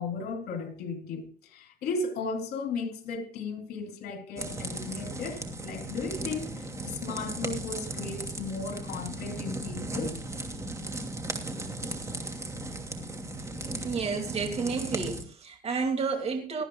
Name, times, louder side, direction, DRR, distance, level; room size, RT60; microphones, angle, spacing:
voice 1, 0.0-10.2, left 4 dB, 70° left, 3.3 m, -35 dB
sound 1, 4.4-15.2, right 2 dB, 15° right, 2.8 m, -36 dB
voice 2, 13.8-16.7, right 5 dB, 40° right, 2.5 m, -30 dB
18.5 x 13.5 x 2.4 m
cardioid pair, 110°, 17 cm